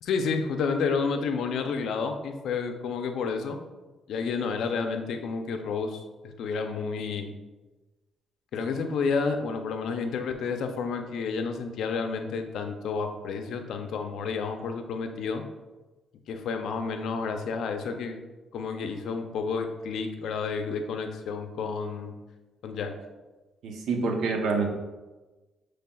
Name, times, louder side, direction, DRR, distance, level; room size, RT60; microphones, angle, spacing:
voice 1, 0.0-3.6 4.1-7.3 8.5-15.4 16.3-18.2 18.5-22.2 22.6-22.9, left 5 dB, 75° left, 6 dB, 0.5 m, -30 dB
voice 2, 23.6-24.7, right 4 dB, 75° right, 2 dB, 0.7 m, -27 dB
6.8 x 3.3 x 2.3 m, 1.2 s
cardioid pair, 90°, 0 cm